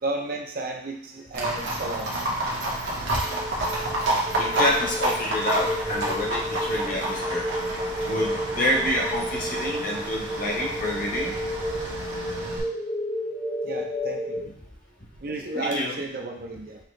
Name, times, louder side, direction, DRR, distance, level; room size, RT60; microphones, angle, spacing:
voice 1, 0.0-2.3 13.6-14.4 15.2-16.8, right 2 dB, 50° right, 1 dB, 0.6 m, -32 dB
Livestock farm animals working animals, 1.3-12.6, right 1 dB, 70° right, 1.2 m, -29 dB
sound 1, 3.2-14.4, equal, 5° left, 0.4 m, -32 dB
voice 2, 4.3-7.4 8.1-11.3 15.5-16.0, left 1 dB, 45° left, -2 dB, 1.0 m, -28 dB
5.9 x 2.8 x 3.2 m, 0.64 s
head